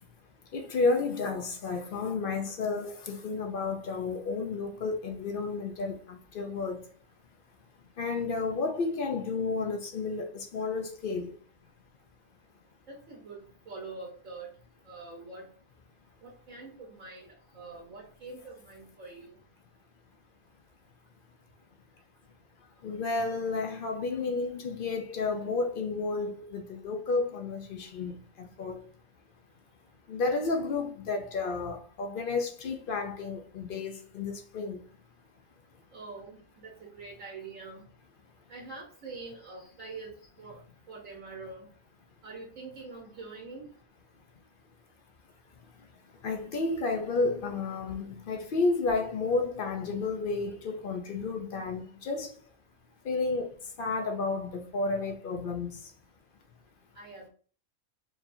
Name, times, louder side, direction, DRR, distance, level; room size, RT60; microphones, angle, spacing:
voice 1, 0.5-6.8 8.0-11.4 22.8-28.9 30.1-34.8 46.2-52.3 53.0-55.8, left 3 dB, 60° left, 0.6 m, -31 dB
voice 2, 12.9-14.5 14.9-15.5 16.2-17.3 17.5-19.3 35.9-37.8 38.5-40.1 40.4-40.6 40.9-41.7 42.2-43.7 56.9-57.3, right 3 dB, 70° right, 1.3 m, -44 dB
4.7 x 2.8 x 2.6 m
omnidirectional pair, 1.4 m